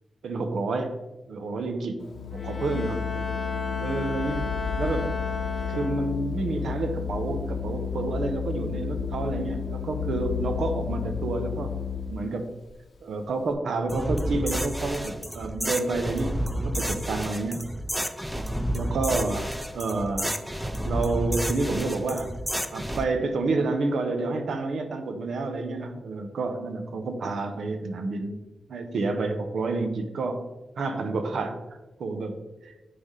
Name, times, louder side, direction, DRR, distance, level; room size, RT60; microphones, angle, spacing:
voice 1, 0.2-1.0 1.3-2.1 2.3-3.0 3.8-5.1 5.7-11.7 12.1-12.5 13.0-17.7 18.7-19.5 19.7-20.4 20.8-22.3 22.7-28.4 28.7-30.4 30.8-31.6 32.0-32.7, right 3 dB, 85° right, 7 dB, 0.8 m, -29 dB
Organ, 2.0-12.3, left 7 dB, 65° left, 0.8 m, -32 dB
Bowed string instrument, 2.3-6.4, left 3 dB, 35° left, 0.9 m, -35 dB
sound 1, 13.9-23.0, equal, 5° right, 0.5 m, -30 dB
9.5 x 3.4 x 3.7 m, 1.1 s
wide cardioid pair, 110°, 0 cm